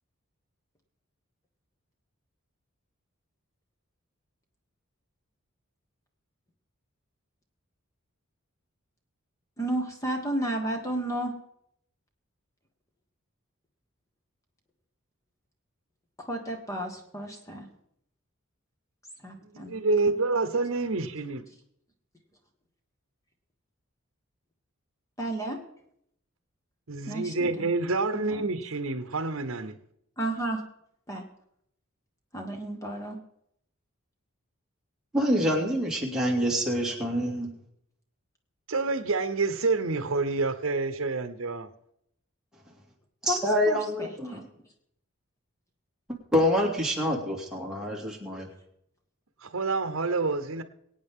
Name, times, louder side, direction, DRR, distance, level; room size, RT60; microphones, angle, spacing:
voice 1, 9.6-11.4 16.2-17.7 19.2-19.8 25.2-25.6 27.1-27.7 28.1-28.4 30.2-30.6 31.1-31.2 32.3-33.2 43.3-44.5, right 1 dB, 15° left, 3 dB, 1.4 m, -32 dB
voice 2, 19.5-21.4 26.9-29.8 38.7-41.7 49.4-50.6, right 3 dB, 70° right, 10 dB, 0.9 m, -28 dB
voice 3, 35.1-37.5 43.2-44.4 46.3-48.5, equal, 5° right, -3 dB, 2.5 m, -26 dB
23.5 x 8.8 x 3.7 m, 0.74 s
head